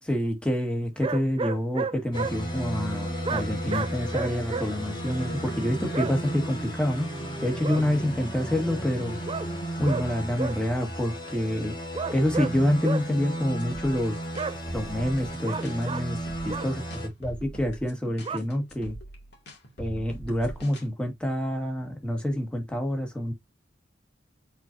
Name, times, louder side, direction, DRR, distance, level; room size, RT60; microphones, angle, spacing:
voice 1, 0.0-7.1 7.4-9.2 9.8-11.7 12.1-14.2 14.7-16.2 16.4-16.8 17.2-19.0 19.8-23.3, left 1 dB, 5° left, 1.9 m, -27 dB
sound 1, 1.0-2.3 3.2-4.7 5.9-6.1 7.6-7.8 9.3-9.5 9.8-10.1 10.4-10.6 11.9-12.5 12.8-13.1 14.4-14.5 15.4-16.0 16.5-16.7 18.2-18.4, right 4 dB, 30° right, 0.5 m, -31 dB
sound 2, 2.1-17.1, right 1 dB, 25° left, 3.7 m, -34 dB
sound 3, 13.6-20.9, right 1 dB, 60° left, 2.6 m, -42 dB
7.9 x 4.3 x 2.7 m
head